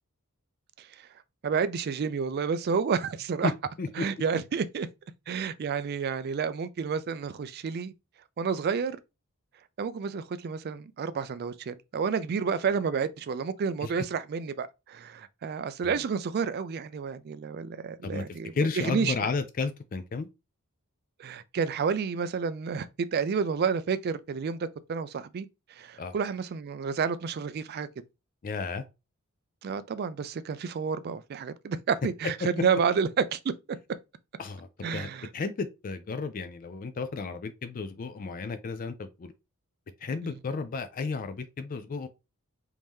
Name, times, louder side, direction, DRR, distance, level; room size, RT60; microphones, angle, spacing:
voice 1, 1.4-3.5 4.0-4.9 5.3-7.9 8.4-9.0 9.8-19.3 21.2-27.9 29.6-33.5 34.8-35.3 40.2-40.4, right 6 dB, 45° right, 0.3 m, -30 dB
voice 2, 18.5-20.3 26.0-26.1 28.4-28.8 34.4-39.3 40.0-42.1, left 4 dB, 40° left, 0.3 m, -33 dB
3.6 x 2.7 x 3.0 m
head